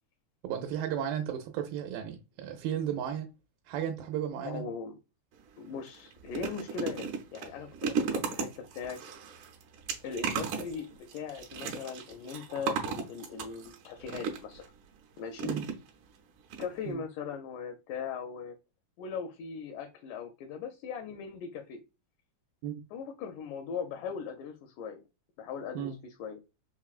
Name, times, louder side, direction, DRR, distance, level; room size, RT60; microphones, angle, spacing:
voice 1, 0.4-3.3 3.7-4.7 15.5-15.7 16.9-17.0 22.6-22.8 25.8-26.0, right 9 dB, 85° right, 2.3 m, -34 dB
voice 2, 4.4-4.9 5.6-9.0 10.0-14.7 15.2-15.5 16.6-18.6 19.0-21.8 22.9-25.0 25.4-26.4, left 6 dB, 80° left, 1.9 m, -39 dB
sound 1, 5.3-5.5 5.9-14.7 15.4-16.2 16.5-16.6 16.9-17.0, right 6 dB, 70° right, 2.0 m, -36 dB
5.7 x 2.1 x 2.4 m
omnidirectional pair, 4.0 m